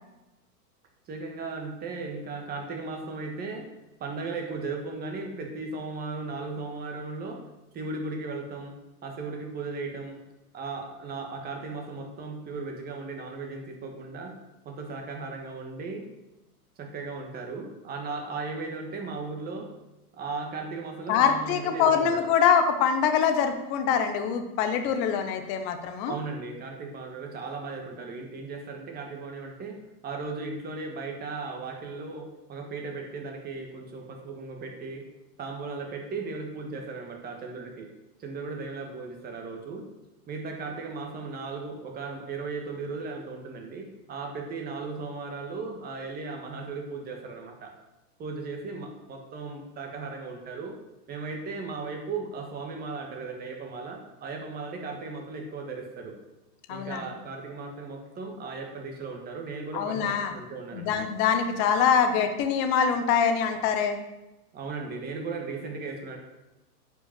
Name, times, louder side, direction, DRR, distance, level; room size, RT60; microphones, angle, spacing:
voice 1, 1.1-3.6 4.0-7.4 7.7-8.7 9.0-10.2 10.5-14.3 14.6-16.1 16.8-19.7 20.1-22.2 26.1-29.8 30.0-35.0 35.4-37.9 38.2-39.8 40.3-47.7 48.2-50.7 51.1-56.2 56.7-61.0 64.5-66.2, right 4 dB, 20° right, 3 dB, 1.5 m, -36 dB
voice 2, 21.1-26.2 56.7-57.1 59.7-60.4 60.7-64.0, left 7 dB, 15° left, 7 dB, 0.4 m, -24 dB
9.8 x 5.4 x 7.2 m, 0.98 s
hypercardioid pair, 150°, 48 cm